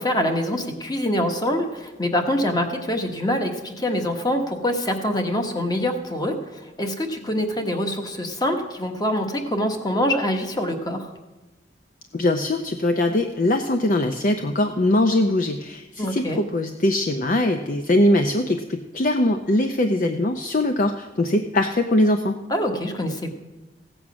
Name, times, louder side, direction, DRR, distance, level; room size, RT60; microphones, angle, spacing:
voice 1, 0.0-11.1 16.0-16.4 22.5-23.3, left 1 dB, 20° left, 5 dB, 1.3 m, -25 dB
voice 2, 12.1-22.4, left 1 dB, 45° left, 6 dB, 0.6 m, -21 dB
16.0 x 8.0 x 6.1 m, 1.1 s
head